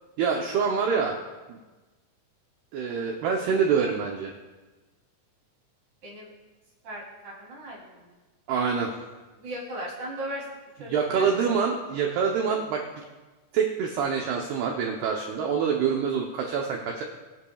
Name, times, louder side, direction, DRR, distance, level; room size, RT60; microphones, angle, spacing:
voice 1, 0.2-1.2 1.5-1.6 2.7-4.3 8.5-8.9 10.9-13.0 13.5-17.0, right 6 dB, 80° right, 1 dB, 2.3 m, -26 dB
voice 2, 6.8-8.0 9.4-10.4 10.8-11.4, equal, 40° right, -5 dB, 3.8 m, -37 dB
22.5 x 10.0 x 2.4 m, 1.2 s
omnidirectional pair, 5.7 m